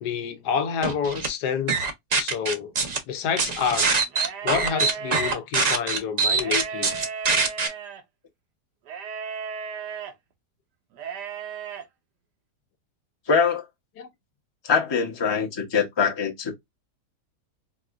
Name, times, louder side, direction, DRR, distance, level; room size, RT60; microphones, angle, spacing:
voice 1, 0.0-1.9 2.1-2.7 3.1-3.9 4.4-7.0 14.0-14.1, left 7 dB, 80° left, 1.3 m, -28 dB
sound 1, 0.8-1.3 1.7-3.0 3.4-7.7, right 4 dB, 55° right, 0.4 m, -23 dB
sound 2, 4.1-5.4 6.3-8.0 8.9-10.1 10.9-11.8, right 6 dB, 85° right, 1.5 m, -35 dB
voice 2, 13.3-13.6 14.6-16.5, left 5 dB, 20° left, 0.7 m, -23 dB
4.7 x 2.4 x 2.4 m
omnidirectional pair, 1.8 m